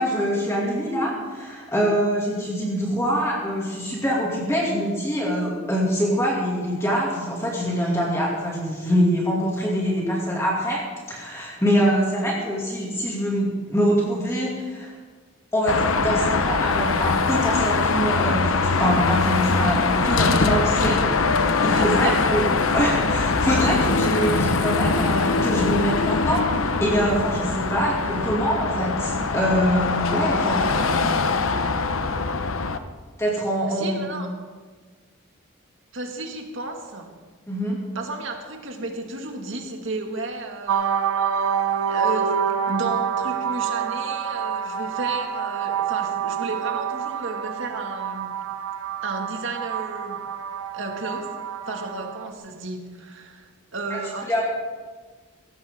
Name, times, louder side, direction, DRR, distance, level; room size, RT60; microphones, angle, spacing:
voice 1, 0.0-10.8 11.1-14.9 15.5-21.0 21.6-26.5 26.8-30.7 33.2-34.3 37.5-37.8 53.9-54.0 54.3-54.4, equal, 15° left, -4 dB, 2.5 m, -24 dB
Car passing by / Traffic noise roadway noise / Engine, 15.7-32.8, left 4 dB, 75° left, 0.9 m, -22 dB
voice 2, 21.7-22.3 33.7-34.3 35.9-37.1 37.9-41.0 41.9-42.4 42.7-48.3 49.0-50.2 50.7-51.3 51.7-54.4, right 2 dB, 65° right, 2 dB, 2.2 m, -33 dB
sound 1, 40.7-52.3, right 8 dB, 90° right, 1.0 m, -27 dB
18.0 x 14.5 x 3.8 m, 1.4 s
head